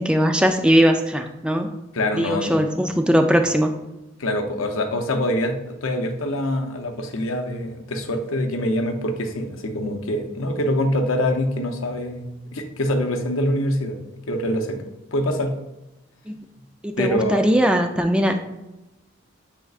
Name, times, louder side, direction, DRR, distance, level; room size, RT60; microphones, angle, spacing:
voice 1, 0.0-1.7 2.1-3.7 16.3-16.4 16.8-18.4, equal, 5° right, 5 dB, 0.3 m, -19 dB
voice 2, 1.9-2.5 4.2-14.0 14.3-14.8 15.1-15.5 17.0-17.5, left 1 dB, 85° left, 4 dB, 0.7 m, -24 dB
6.5 x 3.5 x 2.4 m, 0.97 s
head